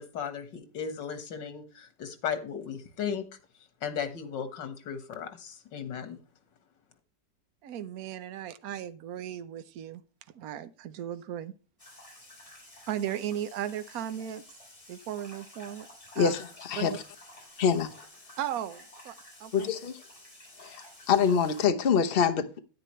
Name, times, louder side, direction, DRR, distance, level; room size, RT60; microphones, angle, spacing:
voice 1, 0.0-3.3 3.8-6.2, left 7 dB, 90° left, 2.1 m, -36 dB
voice 2, 7.6-10.0 10.3-11.5 12.9-14.4 14.9-15.9 16.2-16.3 16.8-17.0 18.4-19.1 19.4-19.7, right 11 dB, 60° right, 1.2 m, -36 dB
sound 1, 11.8-21.7, left 1 dB, 20° left, 2.8 m, -52 dB
voice 3, 16.2-16.9 17.6-17.9 19.5-19.9 20.6-20.8 21.1-22.6, left 6 dB, 40° left, 0.9 m, -25 dB
10.0 x 9.3 x 3.1 m
omnidirectional pair, 1.9 m